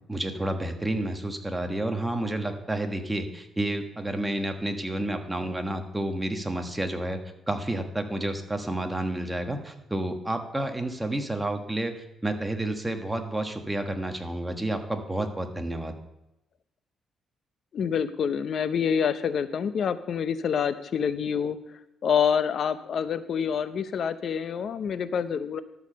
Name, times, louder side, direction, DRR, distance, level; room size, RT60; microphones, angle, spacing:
voice 1, 0.1-7.2 7.5-15.9, right 1 dB, 10° right, 5 dB, 1.4 m, -30 dB
voice 2, 17.7-21.6 22.0-25.6, left 7 dB, 60° left, 13 dB, 0.7 m, -27 dB
13.0 x 4.9 x 6.7 m, 0.90 s
cardioid pair, 90°, 0 cm